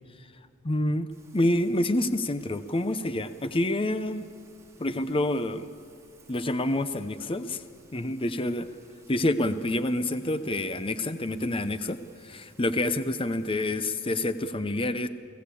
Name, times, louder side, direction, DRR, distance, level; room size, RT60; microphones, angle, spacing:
voice 1, 0.6-4.3 4.8-5.7 6.3-7.6 7.9-8.7 9.1-15.1, left 1 dB, 25° left, 11 dB, 0.7 m, -28 dB
Rain, 1.1-14.5, right 3 dB, 15° right, 3.6 m, -59 dB
29.5 x 16.5 x 8.5 m, 2.7 s
head